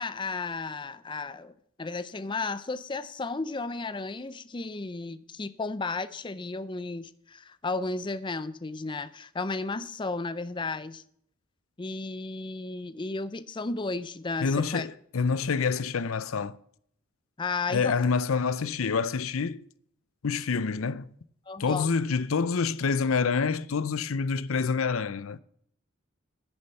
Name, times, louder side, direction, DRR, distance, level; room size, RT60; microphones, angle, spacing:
voice 1, 0.0-1.5 1.8-11.0 11.8-14.9 17.4-18.0 21.5-21.9, left 3 dB, 25° left, 0.5 m, -34 dB
voice 2, 14.4-16.6 17.7-19.7 20.2-21.1 21.6-25.4, left 5 dB, 85° left, 0.6 m, -27 dB
9.9 x 9.8 x 5.6 m
head